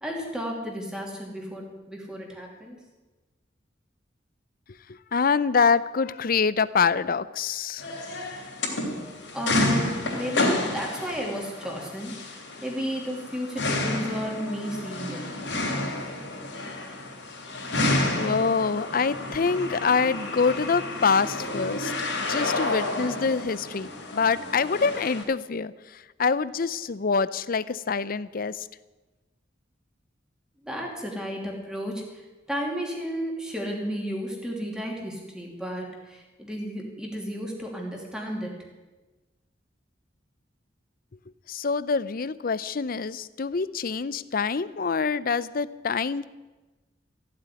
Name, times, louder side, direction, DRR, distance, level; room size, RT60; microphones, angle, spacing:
voice 1, 0.0-2.8 9.3-15.3 30.6-32.2 32.5-38.6, equal, 5° right, 0 dB, 2.9 m, -33 dB
voice 2, 4.9-7.9 18.2-21.9 22.2-28.7 41.5-46.3, left 5 dB, 50° left, 17 dB, 0.5 m, -25 dB
sound 1, 7.8-25.2, left 2 dB, 75° left, 3.4 m, -30 dB
15.0 x 7.7 x 10.0 m, 1.2 s
head